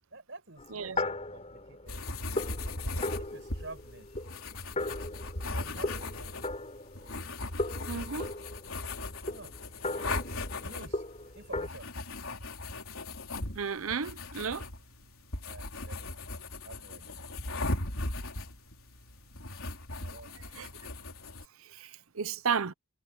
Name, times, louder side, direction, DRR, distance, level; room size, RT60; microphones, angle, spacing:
voice 1, 0.1-2.0 2.8-4.1 5.5-6.4 9.3-9.5 10.6-11.0 11.3-11.9 15.4-16.1 16.6-17.2 20.0-20.6, right 2 dB, 60° right, 6.9 m, -49 dB
sound 1, 0.6-7.3 7.6-11.7, left 2 dB, 30° left, 5.7 m, -38 dB
sound 2, 1.9-21.4, left 2 dB, 90° left, 3.5 m, -38 dB
voice 2, 7.9-8.3 13.5-14.7 20.5-20.7 21.7-22.7, right 6 dB, 85° right, 0.8 m, -33 dB
head